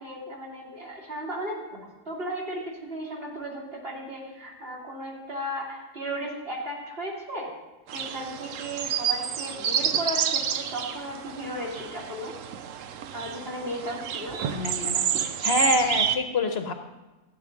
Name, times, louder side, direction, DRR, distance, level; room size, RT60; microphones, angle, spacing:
voice 1, 0.0-7.5 7.9-12.3 13.1-14.4, right 1 dB, 45° right, -3 dB, 2.6 m, -35 dB
sound 1, 7.9-16.2, right 8 dB, 80° right, 1.0 m, -29 dB
voice 2, 14.5-16.7, left 2 dB, 55° left, 6 dB, 1.0 m, -26 dB
13.0 x 8.7 x 3.8 m, 1.1 s
omnidirectional pair, 1.3 m